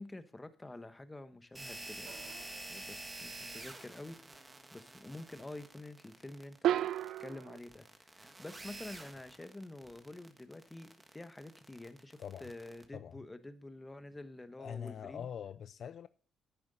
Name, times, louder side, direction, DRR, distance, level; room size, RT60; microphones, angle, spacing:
voice 1, 0.0-6.9 7.2-15.3, left 2 dB, 15° left, 1.0 m, -48 dB
sound 1, 1.5-12.8, right 2 dB, 20° right, 1.5 m, -49 dB
sound 2, 2.0-2.7 6.6-7.6, right 12 dB, 75° right, 0.4 m, -34 dB
voice 2, 12.2-12.5 12.9-13.2 14.6-16.1, left 8 dB, 60° left, 0.4 m, -43 dB
10.5 x 8.8 x 4.1 m
cardioid pair, 90°, 0 cm